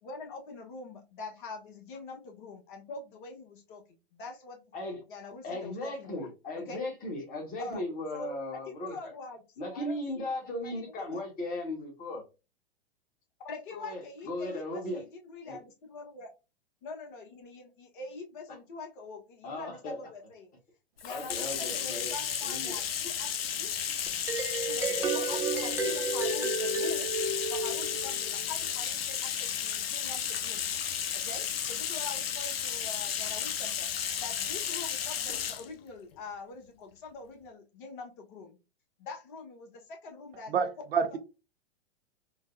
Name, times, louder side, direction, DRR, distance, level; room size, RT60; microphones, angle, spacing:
voice 1, 0.0-3.8 4.1-4.6 5.1-6.3 6.5-6.9 7.6-7.8 8.1-8.4 8.9-10.3 10.6-10.7 11.0-11.2 13.4-16.3 16.8-20.5 21.0-23.7 24.7-27.1 27.5-30.7 31.1-33.9 34.2-38.6 39.0-40.5, left 3 dB, 50° left, 1.1 m, -44 dB
voice 2, 5.4-9.1 9.6-12.2 13.7-15.0 15.4-15.6 18.5-18.6 19.4-20.0 21.1-22.1 22.4-22.8, left 1 dB, 25° left, 1.3 m, -37 dB
Bathtub (filling or washing), 21.0-35.7, left 9 dB, 70° left, 0.6 m, -33 dB
sound 1, 24.1-28.4, right 2 dB, 10° right, 0.4 m, -32 dB
voice 3, 40.5-41.2, right 6 dB, 70° right, 0.6 m, -28 dB
3.8 x 2.2 x 2.5 m
figure-of-eight pair, 105°, 31 cm